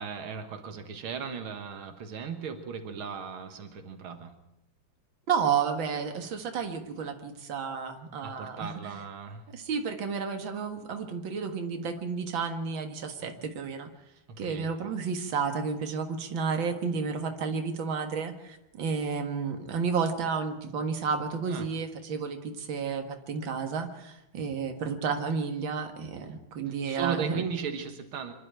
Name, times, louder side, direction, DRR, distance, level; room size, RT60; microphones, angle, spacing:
voice 1, 0.0-4.4 8.2-9.5 14.3-14.7 21.4-21.7 26.7-28.3, right 6 dB, 90° right, 7 dB, 2.3 m, -37 dB
voice 2, 5.3-8.7 9.5-13.9 14.4-27.4, right 5 dB, 70° right, 5 dB, 2.4 m, -31 dB
25.5 x 12.0 x 8.8 m, 0.88 s
omnidirectional pair, 2.2 m